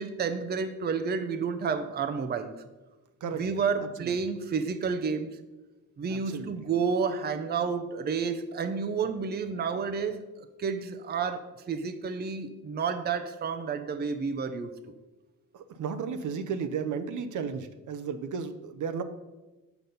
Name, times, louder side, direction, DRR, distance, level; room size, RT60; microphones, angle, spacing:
voice 1, 0.0-2.6 3.4-5.3 6.0-14.7, right 5 dB, 30° right, 0.5 m, -30 dB
voice 2, 6.1-6.5 15.5-19.0, right 6 dB, 75° right, 0.7 m, -34 dB
6.9 x 6.0 x 5.3 m
cardioid pair, 125°, 31 cm